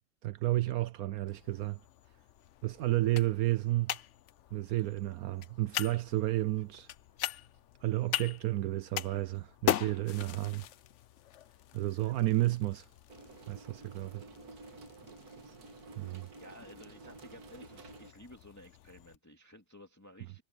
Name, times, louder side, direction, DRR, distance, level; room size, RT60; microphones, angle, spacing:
voice 1, 0.2-1.8 2.6-4.0 4.5-6.9 7.8-10.7 11.7-12.8 13.5-14.3 16.0-16.3, right 16 dB, 75° right, 0.8 m, -31 dB
sound 1, 1.3-19.2, left 11 dB, 85° left, 0.6 m, -41 dB
sound 2, 13.1-18.1, right 3 dB, 55° right, 2.1 m, -51 dB
voice 2, 15.9-20.4, left 1 dB, 10° left, 2.3 m, -54 dB
omnidirectional pair, 2.0 m